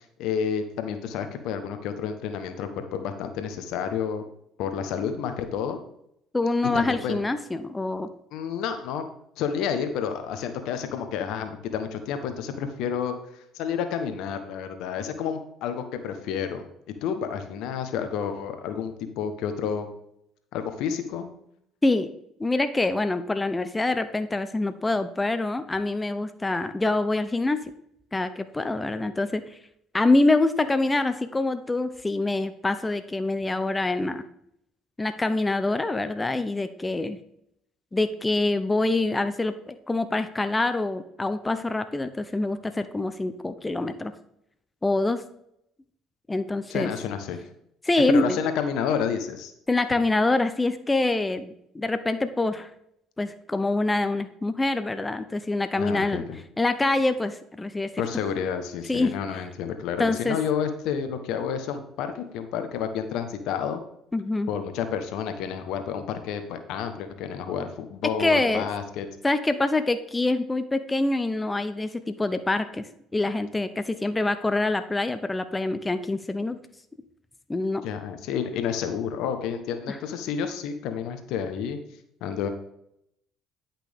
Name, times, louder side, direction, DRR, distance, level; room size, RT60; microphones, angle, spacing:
voice 1, 0.0-4.2 4.6-5.8 6.7-7.2 8.3-9.0 9.4-16.6 17.0-19.9 20.5-21.3 46.7-47.4 48.1-49.5 55.7-56.4 58.0-63.8 64.5-69.1 77.8-81.8 82.2-82.5, left 7 dB, 70° left, 8 dB, 1.1 m, -30 dB
voice 2, 6.3-8.1 21.8-22.1 22.4-27.6 28.1-29.6 29.9-34.2 35.0-37.2 37.9-44.1 44.8-45.2 46.3-46.9 47.8-48.4 49.7-52.7 53.2-56.2 56.6-57.9 58.9-59.1 60.0-60.4 64.1-64.5 68.2-68.7 69.2-72.9 73.1-76.6 77.5-77.9 79.9-80.0, left 2 dB, 15° left, 10 dB, 0.7 m, -25 dB
10.5 x 6.0 x 3.6 m, 0.75 s
hypercardioid pair, 65°, 0 cm